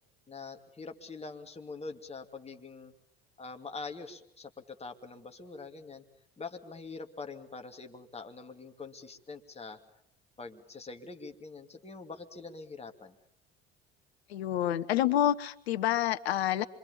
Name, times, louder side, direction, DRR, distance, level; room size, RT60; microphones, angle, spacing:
voice 1, 0.3-2.9 3.4-6.0 6.4-9.8 10.4-13.2, left 4 dB, 20° left, 5 dB, 2.7 m, -44 dB
voice 2, 14.3-16.7, left 12 dB, 80° left, 12 dB, 1.1 m, -28 dB
26.5 x 23.5 x 7.1 m, 0.72 s
hypercardioid pair, 65°, 31 cm